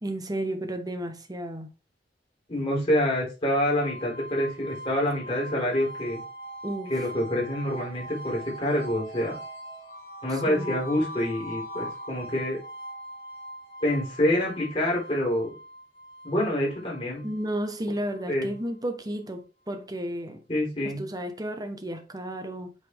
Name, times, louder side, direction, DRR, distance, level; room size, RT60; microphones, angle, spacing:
voice 1, 0.0-1.7 6.6-6.9 10.5-10.8 17.2-20.4 20.8-22.7, right 1 dB, 20° right, 1.1 m, -33 dB
voice 2, 2.5-6.2 6.9-9.4 10.2-12.6 13.8-15.5 16.2-17.2 18.3-18.5 20.5-21.0, left 1 dB, 30° left, 3.9 m, -27 dB
sound 1, 3.7-18.7, right 1 dB, 50° left, 4.4 m, -41 dB
8.1 x 4.2 x 3.5 m
head